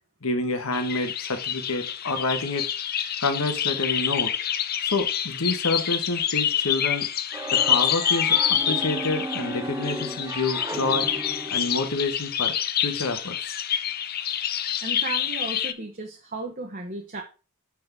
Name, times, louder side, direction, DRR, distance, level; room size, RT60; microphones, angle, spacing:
voice 1, 0.2-2.6 3.2-4.3 4.8-7.1 7.5-11.1 11.5-12.5 12.8-13.6, left 3 dB, 75° left, 1.4 m, -28 dB
sound 1, 0.7-15.7, left 9 dB, 45° left, 0.6 m, -27 dB
sound 2, 7.3-12.1, right 1 dB, 15° right, 0.8 m, -34 dB
voice 2, 14.8-17.2, right 3 dB, 40° right, 1.1 m, -35 dB
7.5 x 6.0 x 3.5 m
head